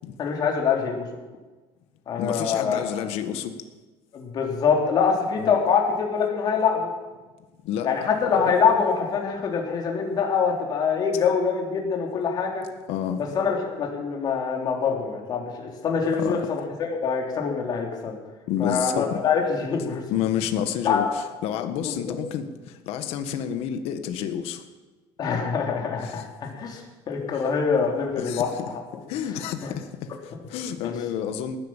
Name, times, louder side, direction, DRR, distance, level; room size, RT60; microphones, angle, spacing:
voice 1, 0.2-1.1 2.1-2.9 4.1-6.9 7.8-12.7 13.4-18.2 18.6-20.0 20.8-21.1 21.8-21.9 25.2-28.8 30.8-30.9, left 6 dB, 40° left, 0 dB, 3.4 m, -24 dB
voice 2, 2.2-3.6 5.4-5.6 7.6-7.9 12.9-13.2 16.2-16.4 18.5-19.2 19.8-24.6 26.0-26.3 27.3-27.5 27.8-31.6, left 9 dB, 70° left, 8 dB, 1.6 m, -30 dB
18.5 x 10.5 x 7.4 m, 1.2 s
cardioid pair, 145°, 11 cm